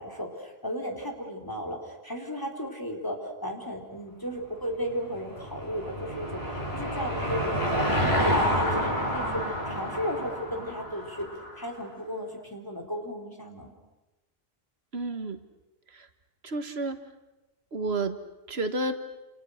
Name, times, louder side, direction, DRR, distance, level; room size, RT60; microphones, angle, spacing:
voice 1, 0.0-7.7 8.0-13.7, equal, 20° left, 2 dB, 4.2 m, -35 dB
Car passing by / Engine, 4.8-11.7, equal, 80° left, 7.5 m, -29 dB
voice 2, 14.9-15.4 15.9-16.1 16.4-17.0 17.7-18.2 18.5-19.0, right 2 dB, 85° right, 9 dB, 1.9 m, -30 dB
29.0 x 29.0 x 6.6 m, 1.1 s
omnidirectional pair, 1.0 m